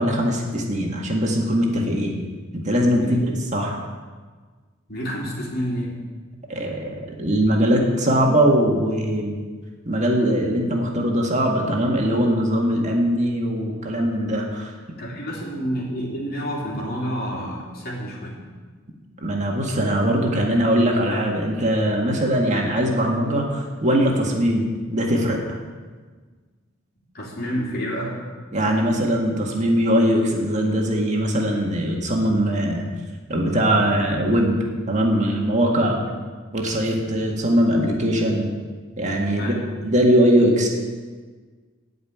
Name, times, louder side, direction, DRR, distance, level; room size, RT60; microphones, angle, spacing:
voice 1, 0.0-2.2 2.5-3.2 3.5-3.8 6.5-9.4 9.9-14.7 19.2-25.4 28.5-32.9 33.3-34.6 34.9-36.0 36.5-38.5 39.0-39.6 39.8-40.7, equal, 35° right, 0 dB, 1.9 m, -21 dB
voice 2, 4.9-6.0 15.0-18.4 27.1-28.2 39.4-39.7, equal, 50° left, -3 dB, 3.3 m, -29 dB
16.0 x 5.4 x 9.3 m, 1.5 s
head